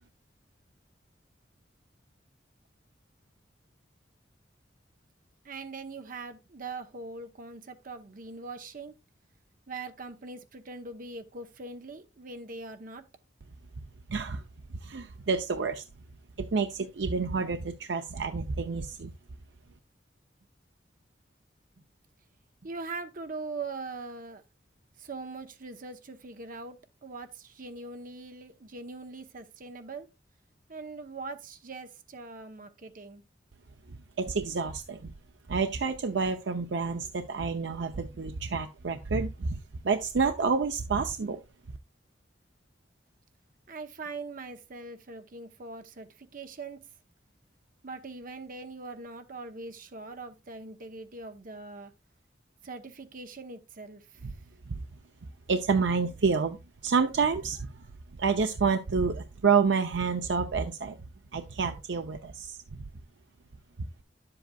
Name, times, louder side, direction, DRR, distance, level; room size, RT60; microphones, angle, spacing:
voice 1, 5.4-8.9 9.7-13.0 22.6-24.4 25.0-30.1 30.7-33.2 43.7-46.8 47.8-51.9 52.6-54.0, right 3 dB, 50° right, 0.9 m, -41 dB
voice 2, 14.1-14.4 14.8-15.8 16.4-19.1 34.2-35.1 35.5-39.6 39.8-41.4 54.7-54.8 55.5-56.6 56.8-57.7 58.2-61.0 61.3-62.6, right 5 dB, 75° right, 0.6 m, -28 dB
10.0 x 7.7 x 2.3 m
head